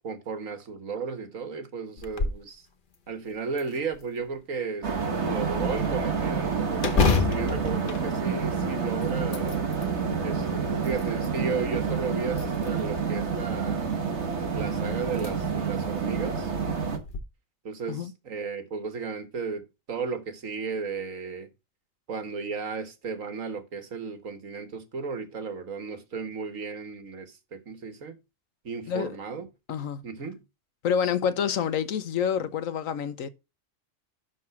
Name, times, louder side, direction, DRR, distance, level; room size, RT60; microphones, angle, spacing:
voice 1, 0.0-2.6 3.1-9.7 10.2-13.9 14.5-16.5 17.6-21.5 22.1-28.2 28.7-29.5 30.0-30.4, right 5 dB, 80° right, 1.9 m, -34 dB
sound 1, 2.0-2.5 2.9-3.0 3.6-4.4 6.8-8.8 9.2-9.9 10.6-11.4 12.3-13.0 14.4-14.5 15.1-15.3 15.8-15.9 16.9-17.2, left 4 dB, 45° left, 1.1 m, -28 dB
sound 2, 4.8-17.0, right 5 dB, 60° right, 1.7 m, -28 dB
voice 2, 29.7-30.0 30.8-33.3, left 7 dB, 85° left, 1.3 m, -27 dB
11.5 x 3.9 x 5.8 m
omnidirectional pair, 1.3 m